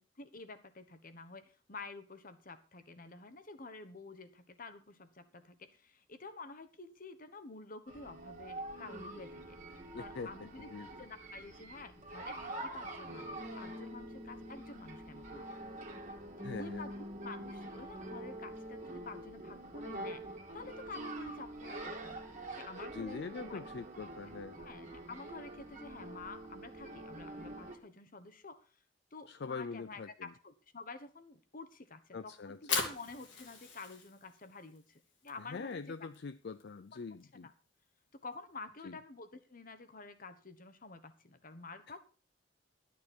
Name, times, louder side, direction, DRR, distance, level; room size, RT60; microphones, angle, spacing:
voice 1, 0.0-9.6 10.0-10.7 11.0-15.6 16.4-16.9 17.2-20.2 20.5-22.2 22.5-23.6 24.5-28.8 29.1-35.8 36.9-37.0 37.4-37.5 38.1-42.0, left 3 dB, 50° left, 1.2 m, -50 dB
sound 1, 7.9-27.7, right 1 dB, 40° right, 2.1 m, -45 dB
voice 2, 9.9-10.9 16.4-16.9 22.9-24.6 29.3-30.3 32.1-32.8 35.4-37.5 38.8-39.0, left 4 dB, 65° left, 0.5 m, -43 dB
Fire, 32.4-38.6, left 4 dB, 90° left, 2.7 m, -42 dB
13.0 x 9.5 x 4.5 m
head